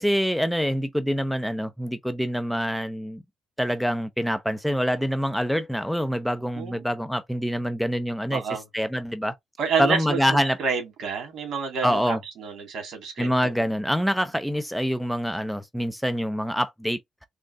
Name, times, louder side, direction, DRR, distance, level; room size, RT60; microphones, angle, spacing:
voice 1, 0.0-3.2 3.6-8.4 8.7-9.4 9.8-10.6 11.8-12.2 13.2-17.0, equal, ahead, 0.6 m, -25 dB
voice 2, 6.6-6.9 8.3-8.6 9.6-13.5, right 5 dB, 65° right, 1.9 m, -29 dB
3.7 x 3.2 x 2.4 m
cardioid pair, 90°, 0 cm